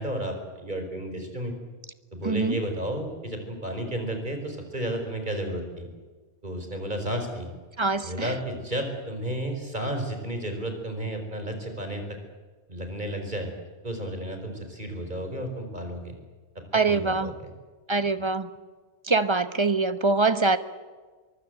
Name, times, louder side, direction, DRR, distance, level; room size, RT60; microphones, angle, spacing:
voice 1, 0.0-1.5 2.1-5.9 6.4-7.5 8.0-12.0 12.7-13.5 13.8-16.1 16.9-17.3, right 1 dB, 40° right, 5 dB, 4.9 m, -32 dB
voice 2, 2.2-2.6 7.8-8.3 16.7-17.3 17.9-18.5 19.0-20.6, right 3 dB, 25° right, 11 dB, 1.1 m, -24 dB
24.0 x 23.5 x 8.0 m, 1.4 s
omnidirectional pair, 1.2 m